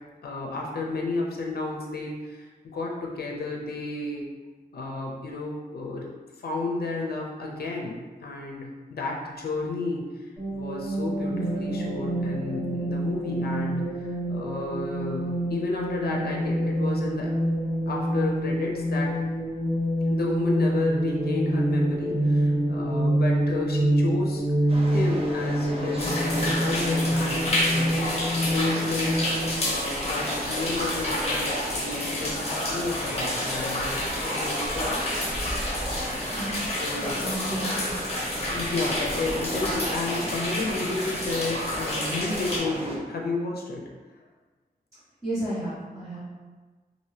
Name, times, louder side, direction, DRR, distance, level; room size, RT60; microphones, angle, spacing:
voice 1, 0.2-4.3 4.7-6.1 6.4-10.3 10.5-17.3 17.9-19.1 20.1-24.4 24.9-34.9 36.8-37.2 38.5-43.8, left 3 dB, 80° left, -1 dB, 0.5 m, -32 dB
sound 1, 10.4-29.6, right 1 dB, 5° left, 1.4 m, -26 dB
sound 2, 24.7-43.0, equal, 40° right, 0.5 m, -36 dB
sound 3, 26.0-42.6, left 1 dB, 40° left, 0.8 m, -30 dB
voice 2, 36.3-36.6 37.0-37.9 38.3-38.4 45.2-46.2, right 1 dB, 15° right, -16 dB, 1.5 m, -32 dB
2.7 x 2.5 x 3.2 m, 1.3 s
wide cardioid pair, 105°, 16 cm